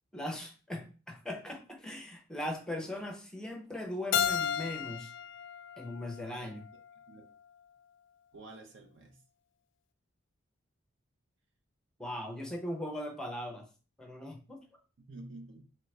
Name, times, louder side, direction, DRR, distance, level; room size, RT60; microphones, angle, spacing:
voice 1, 0.1-5.1 5.8-6.7 12.0-13.7 14.0-14.6, left 1 dB, 5° left, 2 dB, 0.6 m, -39 dB
Keyboard (musical), 4.1-6.9, left 8 dB, 60° left, 0.3 m, -34 dB
voice 2, 8.3-9.2 15.1-15.6, right 2 dB, 60° right, 4 dB, 0.8 m, -49 dB
3.8 x 3.3 x 3.3 m, 0.36 s
head